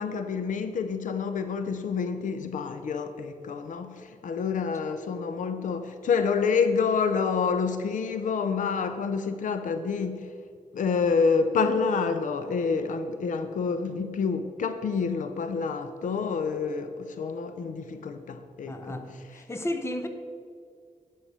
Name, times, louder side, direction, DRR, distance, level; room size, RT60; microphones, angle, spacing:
voice 1, 0.0-10.3 10.7-19.4, left 5 dB, 85° left, 0.6 m, -28 dB
voice 2, 18.6-20.1, left 1 dB, 20° left, 0.9 m, -33 dB
10.0 x 6.5 x 5.5 m
wide cardioid pair, 95°, 13 cm